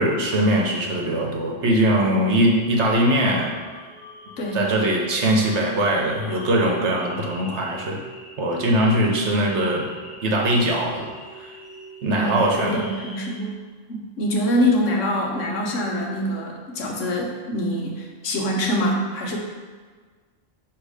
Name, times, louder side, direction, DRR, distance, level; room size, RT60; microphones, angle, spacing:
voice 1, 0.0-3.5 4.5-8.0 8.4-9.8 10.2-11.1 11.4-11.5 12.0-12.9, right 1 dB, 65° right, -1 dB, 1.2 m, -21 dB
sound 1, 3.1-13.4, equal, 35° left, 2.0 m, -43 dB
voice 2, 4.4-4.7 12.2-13.6 13.9-19.4, equal, 70° left, 0 dB, 1.3 m, -24 dB
6.7 x 3.2 x 4.8 m, 1.5 s
omnidirectional pair, 1.3 m